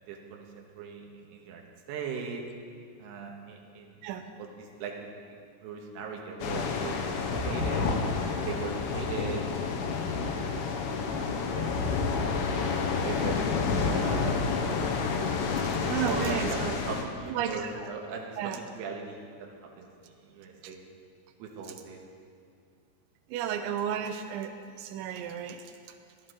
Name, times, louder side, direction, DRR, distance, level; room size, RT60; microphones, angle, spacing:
voice 1, 0.1-2.4 3.0-4.0 4.4-5.4 5.6-7.9 8.4-9.4 9.7-11.2 11.5-12.0 12.3-12.7 13.0-13.5 13.8-14.9 15.8-18.4 18.7-19.5 19.8-20.8 21.4-22.0, right 5 dB, 70° right, 0 dB, 3.1 m, -40 dB
sound 1, 6.4-17.0, left 4 dB, 75° left, 2.8 m, -29 dB
voice 2, 15.6-16.8 17.3-17.9 18.4-18.6 23.3-25.7, right 9 dB, 85° right, 7 dB, 2.9 m, -33 dB
14.5 x 12.0 x 3.8 m, 2.3 s
omnidirectional pair, 5.2 m